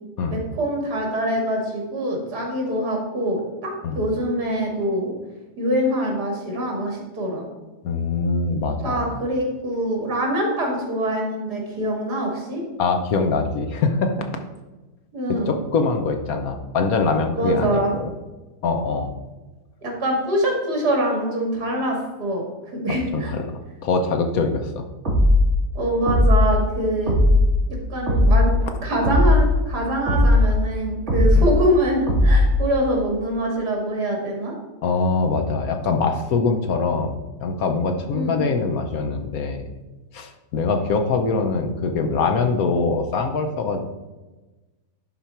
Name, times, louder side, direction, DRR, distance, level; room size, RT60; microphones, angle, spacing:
voice 1, 0.3-5.1 5.6-7.5 8.8-12.6 15.1-15.5 17.4-17.9 19.8-22.4 22.7-23.3 25.7-27.2 27.7-34.5 38.1-38.5, right 1 dB, 75° right, -1 dB, 2.8 m, -24 dB
voice 2, 7.8-9.2 12.8-14.2 15.4-17.8 18.6-19.1 22.9-23.5 23.8-24.8 31.3-31.4 34.8-39.7 40.1-43.8, left 4 dB, 65° left, 6 dB, 1.2 m, -23 dB
sound 1, 25.0-25.4 26.1-26.5 27.1-27.5 28.1-28.5 29.0-29.4 30.1-30.5 31.1-31.5 32.1-32.5, left 1 dB, 40° right, 2.9 m, -16 dB
11.0 x 4.3 x 4.5 m, 1.1 s
omnidirectional pair, 1.8 m